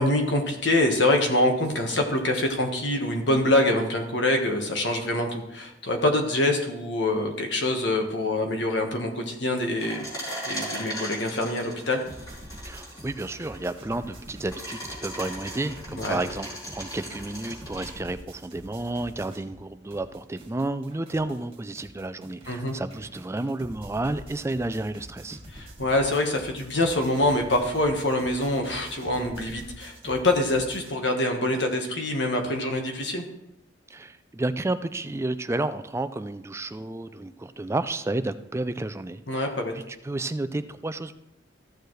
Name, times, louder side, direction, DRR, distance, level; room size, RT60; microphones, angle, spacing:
voice 1, 0.0-10.0 10.5-12.0 16.0-16.2 22.5-22.8 25.5-33.2 39.3-39.7, left 1 dB, 65° left, 3 dB, 1.5 m, -25 dB
sound 1, 9.8-17.9, equal, 20° left, 4.0 m, -38 dB
sound 2, 12.1-19.6 19.9-30.9, equal, 30° right, 1.7 m, -46 dB
voice 2, 12.6-25.4 33.9-39.5 39.8-41.1, right 2 dB, 15° right, 11 dB, 0.4 m, -31 dB
14.5 x 6.8 x 3.2 m, 0.87 s
head